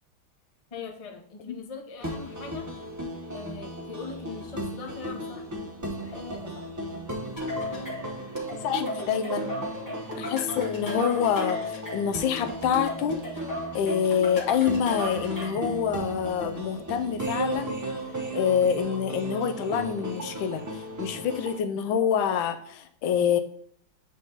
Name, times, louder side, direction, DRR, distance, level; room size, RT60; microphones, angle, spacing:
voice 1, 0.7-2.7 3.3-5.5 5.8-6.7, left 4 dB, 50° left, 2 dB, 0.4 m, -41 dB
sound 1, 2.0-21.6, right 1 dB, 20° right, 0.5 m, -36 dB
sound 2, 7.4-15.7, left 1 dB, 10° left, 1.7 m, -36 dB
voice 2, 8.5-9.5 10.2-13.4 13.7-17.7 18.3-23.4, left 7 dB, 80° left, 7 dB, 1.4 m, -26 dB
8.2 x 3.7 x 3.9 m, 0.64 s
omnidirectional pair, 2.2 m